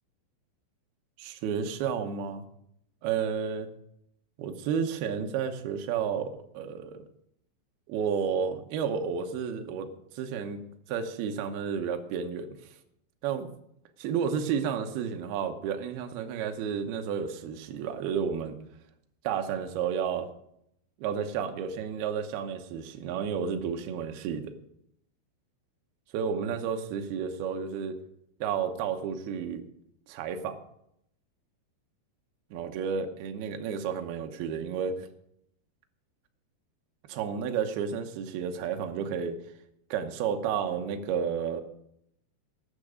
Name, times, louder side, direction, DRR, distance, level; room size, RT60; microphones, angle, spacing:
voice 1, 1.2-2.4 3.0-3.7 4.4-7.1 7.9-9.9 10.2-10.6 10.9-12.7 13.2-13.5 14.0-18.6 19.2-20.3 21.0-24.5 26.1-28.0 28.4-29.7 30.1-30.6 32.5-35.1 37.1-39.4 39.9-41.6, right 7 dB, 70° right, 6 dB, 2.6 m, -31 dB
13.5 x 9.8 x 5.0 m, 0.75 s
omnidirectional pair, 5.4 m